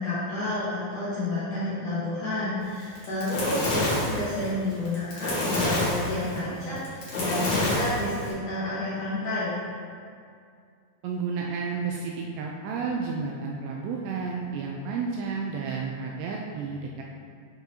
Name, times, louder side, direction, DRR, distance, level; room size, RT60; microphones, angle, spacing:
voice 1, 0.0-9.6, left 2 dB, 70° left, -10 dB, 1.9 m, -30 dB
Fire, 2.8-8.3, left 1 dB, 50° left, 2.6 m, -28 dB
voice 2, 6.5-6.8 11.0-17.0, right 5 dB, 85° right, -1 dB, 2.4 m, -32 dB
8.9 x 5.9 x 2.8 m, 2.3 s
omnidirectional pair, 5.3 m